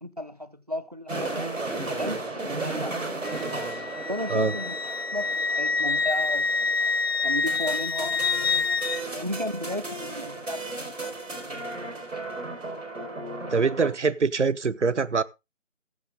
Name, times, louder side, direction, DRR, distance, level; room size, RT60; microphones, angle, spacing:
voice 1, 0.0-1.5 2.0-2.5 2.8-3.1 4.1-4.8 5.1-6.5 7.2-8.5 9.1-11.6 11.9-12.3, left 1 dB, 35° right, 0.6 m, -34 dB
sound 1, 1.1-13.9, right 2 dB, 85° right, 4.5 m, -35 dB
Wind instrument woodwind instrument, 3.2-9.0, left 4 dB, 55° left, 0.5 m, -27 dB
voice 2, 13.5-15.2, right 4 dB, 70° right, 0.9 m, -24 dB
14.5 x 8.0 x 3.7 m
figure-of-eight pair, 175°, 37 cm